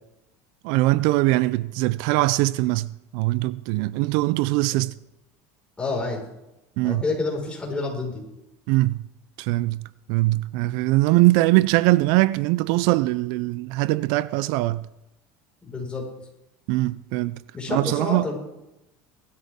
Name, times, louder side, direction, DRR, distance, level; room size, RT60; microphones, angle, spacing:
voice 1, 0.6-4.9 6.8-7.0 8.7-9.0 9.4-14.9 16.7-17.4 17.7-18.3, right 19 dB, 65° right, 0.4 m, -22 dB
voice 2, 5.8-6.2 6.8-8.2 15.6-16.0 17.5-18.4, left 3 dB, 15° left, 5.2 m, -28 dB
19.5 x 13.0 x 3.7 m
supercardioid pair, 130°, 8 cm